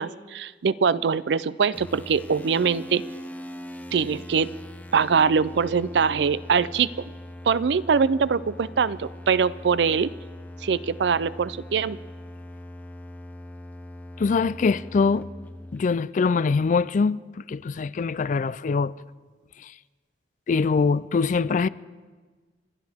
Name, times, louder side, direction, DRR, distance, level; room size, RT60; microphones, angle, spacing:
voice 1, 0.0-3.0 3.9-4.5 4.9-6.9 7.5-10.1 10.6-12.0, right 6 dB, 70° right, 0.4 m, -23 dB
sound 1, 1.7-15.8, left 1 dB, 10° left, 0.7 m, -41 dB
voice 2, 14.2-15.3 15.7-18.9 19.6-19.7 20.5-21.7, left 4 dB, 45° left, 0.3 m, -23 dB
30.0 x 11.5 x 3.6 m
head